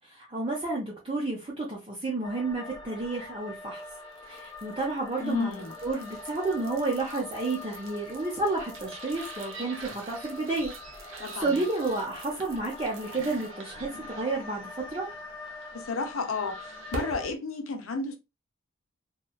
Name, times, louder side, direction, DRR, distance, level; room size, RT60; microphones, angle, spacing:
voice 1, 0.1-3.8 4.3-15.1, right 3 dB, 25° right, 0.6 m, -31 dB
sound 1, 2.2-17.3, left 3 dB, 20° left, 0.5 m, -44 dB
sound 2, 3.7-17.3, right 3 dB, 75° right, 0.6 m, -46 dB
voice 2, 5.2-5.7 11.2-11.6 15.7-16.6 16.9-18.2, left 3 dB, 80° left, 0.6 m, -32 dB
2.9 x 2.3 x 2.3 m
head